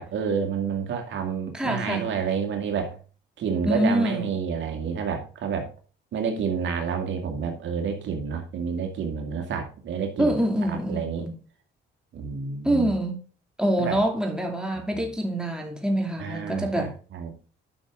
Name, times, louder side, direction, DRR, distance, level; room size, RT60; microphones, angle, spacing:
voice 1, 0.0-3.0 3.4-5.7 6.1-10.4 10.7-11.3 12.1-13.0 13.8-14.0 14.7-15.1 16.2-17.3, right 6 dB, 70° right, 2.2 m, -29 dB
voice 2, 1.5-2.0 3.7-4.2 10.2-11.4 12.6-13.2 13.6-16.9, right 1 dB, 5° right, 2.8 m, -25 dB
11.0 x 6.0 x 3.8 m
cardioid pair, 90°, 20 cm